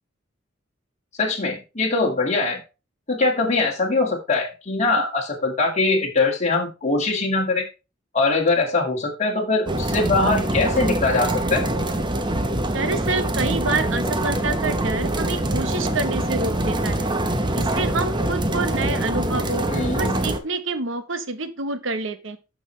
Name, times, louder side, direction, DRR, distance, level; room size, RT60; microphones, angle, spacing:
voice 1, 1.2-2.6 3.1-7.7 8.1-11.6 19.7-20.2, left 3 dB, 35° left, -1 dB, 2.2 m, -22 dB
sound 1, 9.7-20.4, right 1 dB, 25° right, 0.9 m, -24 dB
voice 2, 12.7-17.1 17.5-19.7 20.0-22.4, right 3 dB, 65° right, 10 dB, 1.1 m, -27 dB
12.0 x 6.1 x 3.2 m, 0.29 s
head